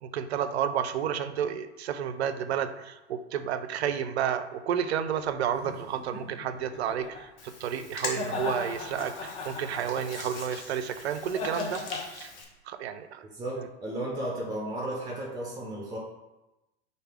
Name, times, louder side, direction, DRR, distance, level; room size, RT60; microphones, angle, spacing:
voice 1, 0.0-12.3 12.7-13.2 13.6-13.7, right 8 dB, 65° right, 10 dB, 0.4 m, -31 dB
sound 1, 5.5-7.2 8.0-10.4 11.3-12.0, left 3 dB, 20° left, 0.6 m, -37 dB
Hands, 7.4-12.4, left 4 dB, 55° left, 1.0 m, -42 dB
voice 2, 13.3-16.0, right 1 dB, 10° right, -3 dB, 0.7 m, -34 dB
3.2 x 2.7 x 4.4 m, 0.99 s
figure-of-eight pair, 95°, 34 cm